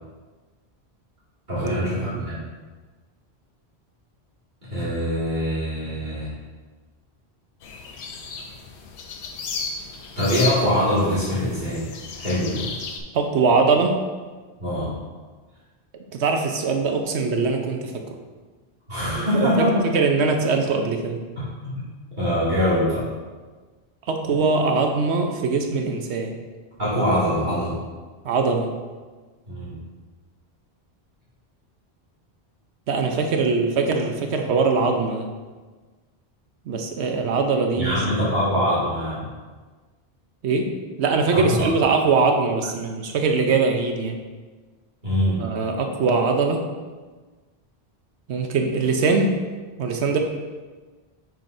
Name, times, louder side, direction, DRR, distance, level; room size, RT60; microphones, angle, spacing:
voice 1, 1.5-2.4 4.7-6.3 10.2-11.8 12.1-12.7 14.6-14.9 18.9-19.9 21.4-21.8 22.2-23.0 26.8-27.8 29.5-29.8 37.8-39.3 41.3-41.6 45.0-45.4, equal, 45° right, -11 dB, 2.3 m, -23 dB
sound 1, 7.6-13.0, left 4 dB, 80° left, 1.0 m, -34 dB
voice 2, 13.1-14.0 16.1-18.0 19.1-21.2 24.1-26.3 28.2-28.7 32.9-35.3 36.7-38.0 40.4-40.7 41.0-44.2 45.4-46.6 48.3-49.3 49.8-50.2, right 4 dB, 85° right, 4 dB, 1.0 m, -22 dB
7.8 x 5.9 x 2.6 m, 1.4 s
omnidirectional pair, 1.1 m